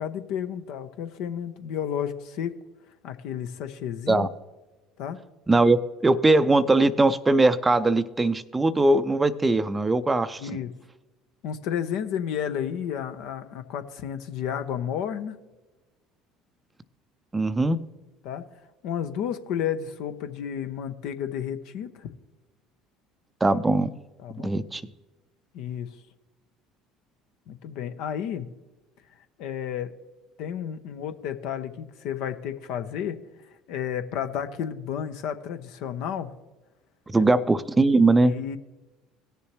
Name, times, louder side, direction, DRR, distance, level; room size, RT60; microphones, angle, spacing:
voice 1, 0.0-2.5 3.0-4.3 5.0-5.2 10.4-10.7 11.4-15.4 18.2-18.5 18.8-22.1 24.2-24.5 25.5-25.9 27.5-28.5 29.4-29.9 30.4-33.2 33.7-36.3 37.1-37.2 38.2-38.6, left 9 dB, 65° left, 9 dB, 0.7 m, -32 dB
voice 2, 5.5-10.4 17.3-17.8 23.4-23.9 24.4-24.8 37.1-38.3, right 2 dB, 20° right, 14 dB, 0.5 m, -21 dB
17.5 x 6.9 x 3.1 m, 1.1 s
hypercardioid pair, 65°, 0 cm